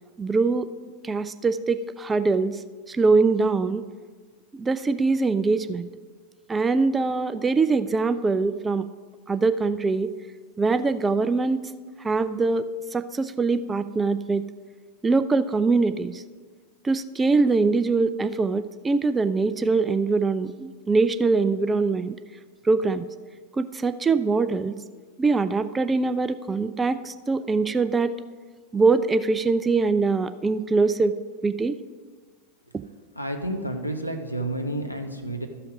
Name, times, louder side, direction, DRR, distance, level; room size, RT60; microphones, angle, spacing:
voice 1, 0.2-0.7 1.0-2.6 2.9-3.8 4.5-5.9 6.5-8.9 9.3-10.1 10.6-11.7 12.0-14.4 15.0-16.2 16.8-22.2 22.6-23.1 23.5-24.7 25.2-28.1 28.7-31.1 31.4-31.8 32.7-32.8, right 4 dB, 15° right, 11 dB, 0.4 m, -23 dB
voice 2, 33.2-35.5, right 1 dB, 90° left, 4 dB, 0.9 m, -30 dB
13.0 x 5.7 x 5.1 m, 1.5 s
figure-of-eight pair, 90°, 0 cm